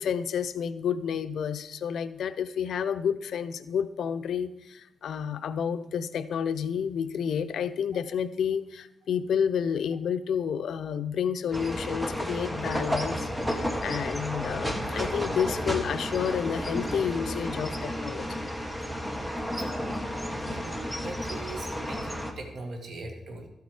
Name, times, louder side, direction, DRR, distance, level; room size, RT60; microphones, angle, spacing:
voice 1, 0.0-18.4, left 7 dB, 80° left, 0.6 m, -30 dB
sound 1, 11.5-22.3, equal, 5° right, 1.0 m, -32 dB
voice 2, 20.4-23.5, right 2 dB, 60° right, 2.0 m, -41 dB
13.0 x 8.3 x 4.8 m
wide cardioid pair, 155°, 0 cm